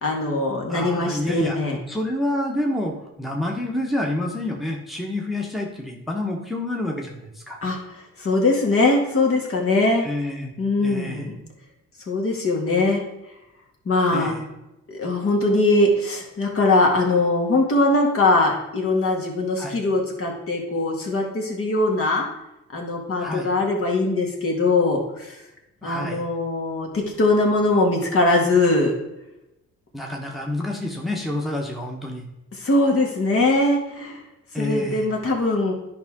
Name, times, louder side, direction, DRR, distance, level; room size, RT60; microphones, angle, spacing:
voice 1, 0.0-1.8 7.6-10.1 10.6-11.4 12.1-13.0 13.9-14.3 14.9-22.3 22.7-25.4 25.8-28.9 32.5-34.2 34.6-35.7, left 2 dB, 45° left, 0 dB, 2.0 m, -21 dB
voice 2, 0.7-1.6 1.9-7.6 10.0-10.5 10.8-11.3 14.1-14.4 19.6-19.8 23.2-23.5 25.8-26.2 29.9-32.3 34.5-35.1, left 1 dB, ahead, 0 dB, 1.2 m, -28 dB
10.5 x 5.1 x 3.7 m, 0.91 s
cardioid pair, 90°, 30 cm